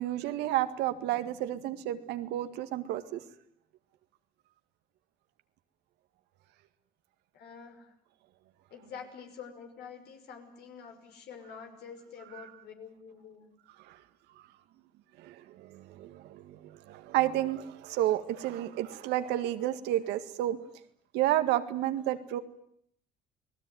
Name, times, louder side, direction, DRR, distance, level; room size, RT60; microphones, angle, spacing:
voice 1, 0.0-3.2 13.9-14.0 15.2-20.6 21.1-22.4, right 13 dB, 90° right, 9 dB, 1.9 m, -31 dB
voice 2, 7.3-7.9 8.7-13.5, left 6 dB, 75° left, 5 dB, 5.7 m, -47 dB
29.5 x 19.5 x 9.4 m, 0.70 s
cardioid pair, 110°, 17 cm